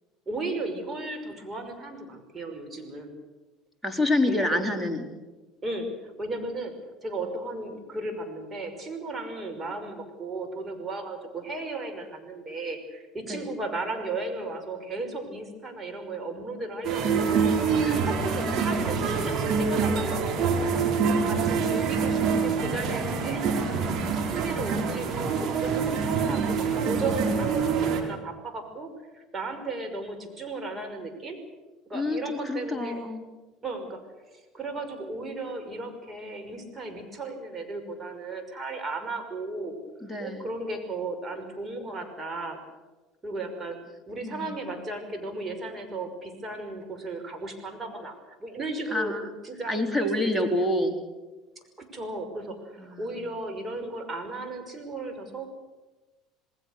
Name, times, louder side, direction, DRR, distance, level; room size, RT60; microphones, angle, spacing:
voice 1, 0.3-3.1 4.2-4.7 5.6-6.7 7.0-23.9 24.3-31.4 31.9-33.0 33.6-39.7 40.2-42.6 43.2-49.1 49.4-50.7 51.8-55.5, right 2 dB, 25° right, 6 dB, 5.8 m, -35 dB
voice 2, 3.8-5.1 13.3-13.4 17.8-19.1 21.3-22.5 31.9-33.2 40.0-40.4 44.2-44.7 48.9-49.3 49.7-51.0 52.8-53.1, left 1 dB, 5° right, 5 dB, 3.9 m, -29 dB
sound 1, 16.8-28.0, right 5 dB, 45° right, 4.4 m, -26 dB
27.5 x 20.0 x 6.8 m, 1.2 s
hypercardioid pair, 70°, 0 cm